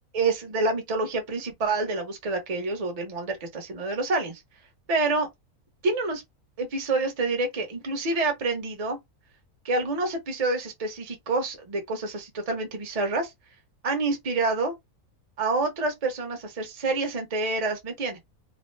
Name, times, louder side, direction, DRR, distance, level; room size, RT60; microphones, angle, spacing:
voice 1, 0.1-4.4 4.9-5.3 5.8-6.2 6.6-9.0 9.6-13.3 13.8-14.7 15.4-18.2, right 3 dB, 35° right, 0.6 m, -27 dB
2.5 x 2.0 x 3.1 m
omnidirectional pair, 1.6 m